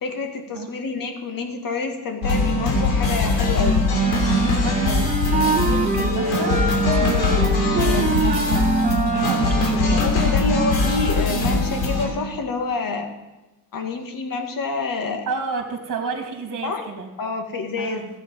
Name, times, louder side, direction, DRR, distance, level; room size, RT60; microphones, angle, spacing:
voice 1, 0.0-3.9 6.8-7.3 7.8-8.2 9.8-13.1 13.7-15.3 16.6-16.8 17.2-18.1, left 4 dB, 45° left, 5 dB, 2.1 m, -27 dB
sound 1, 2.2-12.1, left 2 dB, 75° left, 3.4 m, -21 dB
sound 2, 4.0-9.7, right 3 dB, 20° right, 1.2 m, -25 dB
voice 2, 4.4-7.7 8.2-8.7 9.1-10.1 15.3-17.1 17.8-18.1, right 5 dB, 45° right, 2 dB, 2.7 m, -31 dB
14.0 x 8.5 x 5.5 m, 1.1 s
cardioid pair, 95°, 46 cm